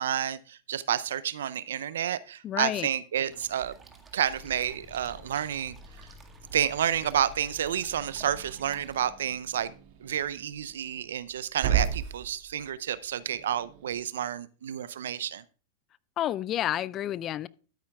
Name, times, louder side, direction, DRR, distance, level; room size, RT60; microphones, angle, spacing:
voice 1, 0.0-3.7 4.1-5.8 6.5-9.7 10.0-15.4, right 10 dB, 75° right, 0.5 m, -30 dB
voice 2, 2.4-2.9 16.2-17.5, left 12 dB, 35° left, 0.4 m, -30 dB
Growling / Hiss, 3.2-14.0, right 9 dB, 55° right, 2.2 m, -38 dB
sound 1, 3.3-9.0, right 4 dB, 20° right, 1.8 m, -55 dB
sound 2, 4.3-10.2, left 3 dB, 15° left, 5.0 m, -52 dB
13.0 x 9.5 x 2.3 m
hypercardioid pair, 95°, 0 cm